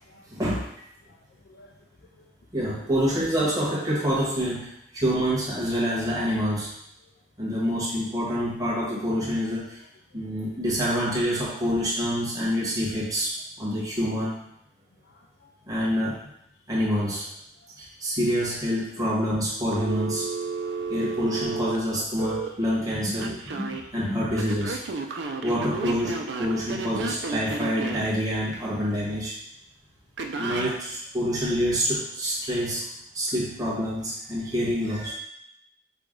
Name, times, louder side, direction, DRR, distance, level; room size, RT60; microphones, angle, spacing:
voice 1, 0.3-0.7 2.5-6.7 7.4-9.8 10.1-14.3 15.7-16.2 16.7-17.2 17.8-20.3 20.9-24.8 25.1-29.3 30.4-32.8 33.1-35.1, equal, 20° right, -7 dB, 1.4 m, -27 dB
voice 2, 1.4-1.8 2.2-2.3 15.0-15.5 17.6-17.7 19.7-20.0 20.6-20.8 23.7-23.9 27.1-27.3 30.6-30.7 35.1-35.2, left 2 dB, 65° left, 2 dB, 0.4 m, -53 dB
Telephone, 19.7-22.5 23.2-23.8 24.4-28.1 30.2-30.7, right 4 dB, 85° right, 0.5 m, -32 dB
5.8 x 2.3 x 3.8 m, 0.77 s
head